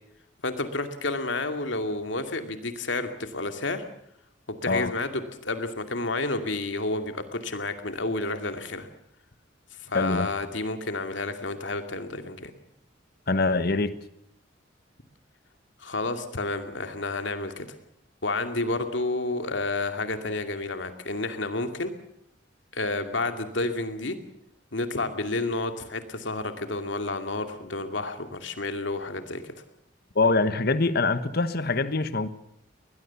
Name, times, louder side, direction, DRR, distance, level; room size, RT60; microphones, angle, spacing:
voice 1, 0.4-3.8 4.5-8.9 9.8-12.5 15.8-17.7 18.2-21.9 22.7-24.2 24.7-29.5, left 2 dB, 70° left, 7 dB, 2.5 m, -30 dB
voice 2, 9.9-10.3 13.3-13.9 30.1-32.3, left 3 dB, 55° left, 13 dB, 1.2 m, -24 dB
21.0 x 21.0 x 7.1 m, 0.74 s
head